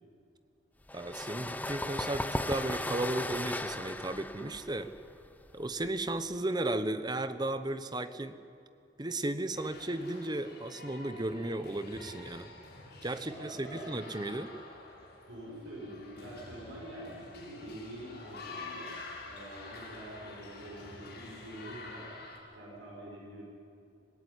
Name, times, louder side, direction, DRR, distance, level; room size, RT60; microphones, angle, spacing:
sound 1, 0.9-6.4, left 1 dB, 10° left, 0.7 m, -37 dB
voice 1, 0.9-4.9 5.5-8.3 9.0-12.5 13.0-14.5, right 2 dB, 20° right, 11 dB, 1.0 m, -35 dB
sound 2, 9.5-22.4, left 3 dB, 55° left, 7.2 m, -48 dB
voice 2, 13.2-13.8 15.2-18.9 19.2-22.1 22.5-23.4, right 1 dB, 90° right, -3 dB, 6.4 m, -46 dB
26.5 x 16.5 x 9.9 m, 2.6 s
head